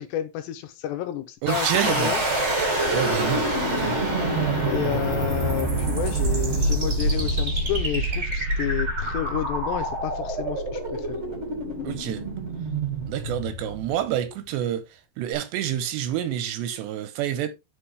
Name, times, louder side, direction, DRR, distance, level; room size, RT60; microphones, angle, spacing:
voice 1, 0.0-2.2 4.7-11.2, left 12 dB, 80° left, 2.9 m, -30 dB
voice 2, 1.4-2.1 2.9-3.5 3.8-4.0 11.8-12.2 13.1-14.8 15.2-17.5, right 11 dB, 80° right, 2.8 m, -27 dB
sound 1, 1.5-14.4, right 1 dB, 35° right, 1.2 m, -26 dB
10.5 x 5.0 x 3.4 m
omnidirectional pair, 5.3 m